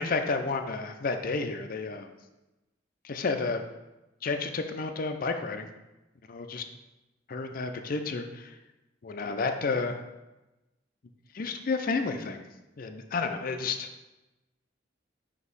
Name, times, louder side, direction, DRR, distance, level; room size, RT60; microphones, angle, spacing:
voice 1, 0.0-2.1 3.0-3.6 4.2-5.7 6.3-6.6 7.3-8.6 9.0-10.0 11.3-12.4 12.8-13.9, left 4 dB, 50° left, 6 dB, 0.5 m, -31 dB
6.2 x 2.9 x 5.4 m, 1.0 s
head